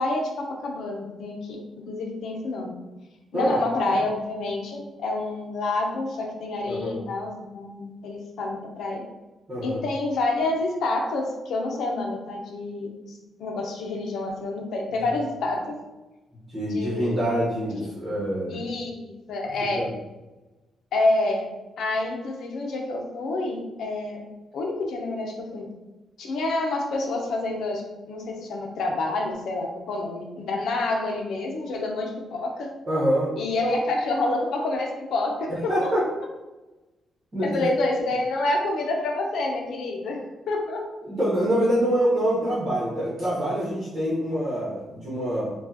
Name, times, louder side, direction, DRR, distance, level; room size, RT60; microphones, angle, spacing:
voice 1, 0.0-1.6 1.9-2.7 3.3-9.0 9.6-15.8 16.7-17.3 18.5-19.9 20.9-21.5 21.8-24.2 24.5-25.7 26.2-32.7 33.4-35.9 37.4-40.9 42.4-42.5, left 2 dB, 70° left, 1 dB, 0.7 m, -28 dB
voice 2, 6.6-7.0 9.5-9.8 16.5-18.6 19.7-19.9 32.9-33.3 33.6-33.8 35.5-36.0 37.3-37.6 41.0-45.5, equal, 30° right, -8 dB, 1.1 m, -25 dB
4.4 x 2.4 x 2.8 m, 1.1 s
cardioid pair, 160°, 0 cm